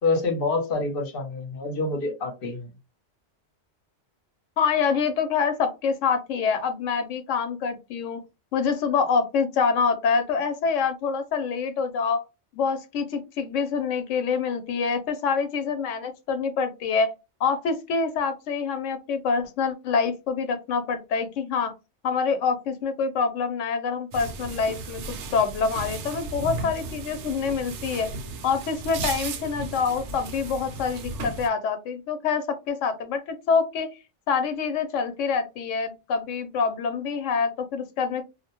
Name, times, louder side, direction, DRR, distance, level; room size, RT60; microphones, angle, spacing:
voice 1, 0.0-2.7, left 3 dB, 55° left, 4 dB, 0.8 m, -27 dB
voice 2, 4.6-8.2 8.5-12.2 12.5-17.1 17.4-21.7 22.0-28.1 28.4-33.9 34.3-38.2, left 5 dB, 85° left, 9 dB, 0.9 m, -26 dB
sound 1, 24.1-31.5, right 3 dB, 75° right, 0.9 m, -35 dB
2.4 x 2.1 x 2.9 m, 0.26 s
omnidirectional pair, 1.3 m